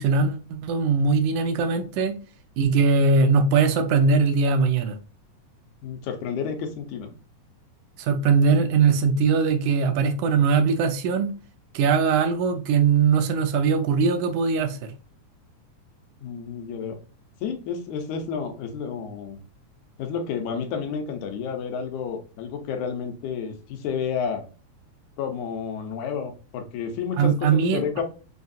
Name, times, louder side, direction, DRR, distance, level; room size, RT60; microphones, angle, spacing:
voice 1, 0.0-2.1 2.6-5.0 8.0-11.3 11.7-14.9 27.2-27.8, right 5 dB, 80° right, 2.0 m, -21 dB
voice 2, 5.8-7.1 16.2-17.0 17.4-19.4 20.0-24.4 25.2-28.0, left 6 dB, 90° left, 2.2 m, -30 dB
5.7 x 2.6 x 2.4 m
omnidirectional pair, 3.4 m